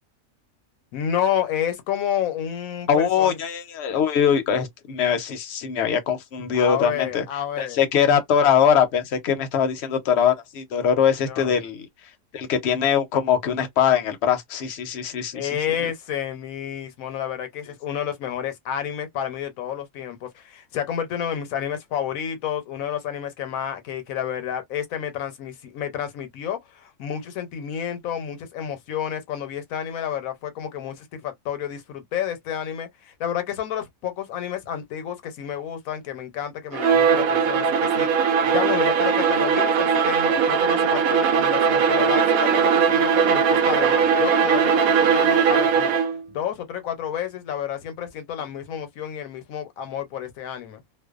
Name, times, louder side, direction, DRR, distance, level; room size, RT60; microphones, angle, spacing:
voice 1, 0.9-3.4 6.5-7.8 11.2-11.6 15.3-38.1 38.4-45.9 46.3-50.8, left 9 dB, 80° left, 1.1 m, -30 dB
voice 2, 2.9-7.2 7.6-11.9 12.3-15.5, left 8 dB, 60° left, 0.8 m, -22 dB
Bowed string instrument, 36.7-46.2, right 6 dB, 90° right, 1.0 m, -19 dB
2.5 x 2.2 x 2.3 m
omnidirectional pair, 1.5 m